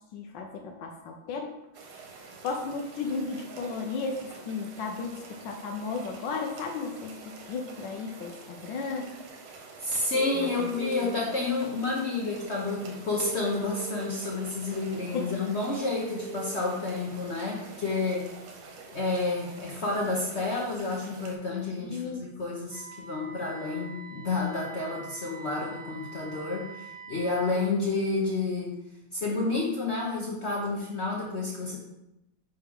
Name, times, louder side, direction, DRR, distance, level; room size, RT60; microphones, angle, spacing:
voice 1, 0.1-1.6 2.4-4.2 4.5-9.1 10.3-10.7 11.1-11.2 15.1-15.3 21.8-22.3, left 4 dB, 70° left, 2 dB, 1.3 m, -34 dB
sound 1, 1.7-21.4, right 4 dB, 90° right, 1.8 m, -47 dB
voice 2, 9.8-18.3 18.9-28.7 29.1-31.8, left 3 dB, 50° left, -3 dB, 0.8 m, -30 dB
sound 2, 10.1-11.1 13.1-14.1 16.1-16.5, right 4 dB, 60° right, 1.3 m, -39 dB
Wind instrument woodwind instrument, 22.7-27.7, right 5 dB, 35° right, 1.7 m, -45 dB
8.9 x 3.4 x 3.5 m, 0.89 s
omnidirectional pair, 2.3 m